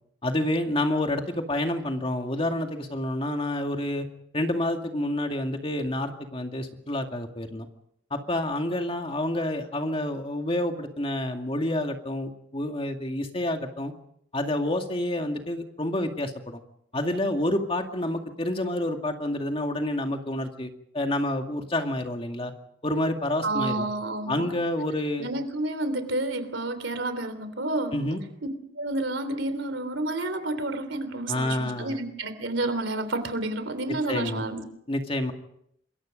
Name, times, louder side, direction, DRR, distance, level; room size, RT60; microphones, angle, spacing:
voice 1, 0.2-4.1 4.3-7.7 8.1-13.9 14.3-16.6 16.9-22.5 22.8-23.9 24.3-25.3 27.9-28.2 31.3-32.0 33.9-34.4 34.9-35.3, left 1 dB, 30° left, 4 dB, 2.2 m, -28 dB
voice 2, 23.4-24.5 25.2-28.0 28.8-34.6, right 2 dB, 85° right, 11 dB, 3.3 m, -30 dB
27.0 x 22.5 x 5.2 m, 0.73 s
head